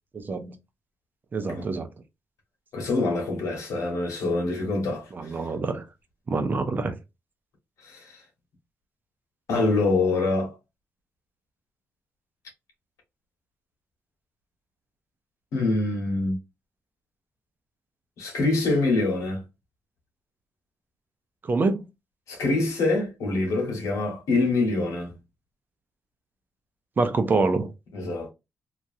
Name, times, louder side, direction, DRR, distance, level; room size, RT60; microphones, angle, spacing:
voice 1, 0.1-0.5 1.3-1.9 5.1-5.9 6.3-7.0 21.4-21.8 27.0-27.7, right 3 dB, 40° right, 0.6 m, -25 dB
voice 2, 2.7-5.3 7.8-8.1 9.5-10.5 15.5-16.4 18.2-19.4 22.3-25.1 27.9-28.3, left 3 dB, 85° left, 1.4 m, -25 dB
2.9 x 2.4 x 2.6 m
cardioid pair, 105°, 5 cm